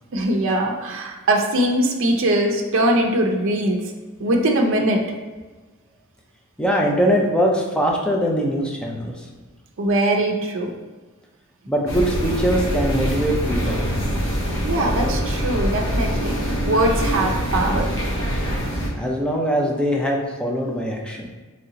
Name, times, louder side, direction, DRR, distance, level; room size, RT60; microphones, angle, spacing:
voice 1, 0.1-3.9 4.2-5.0 9.8-10.7 14.6-17.9, right 1 dB, 60° right, 1 dB, 0.5 m, -21 dB
voice 2, 6.6-9.1 11.7-13.9 19.0-21.2, equal, 5° left, -1 dB, 0.5 m, -22 dB
sound 1, 11.9-18.9, equal, 65° left, 0.8 m, -24 dB
3.2 x 2.9 x 3.7 m, 1.3 s
head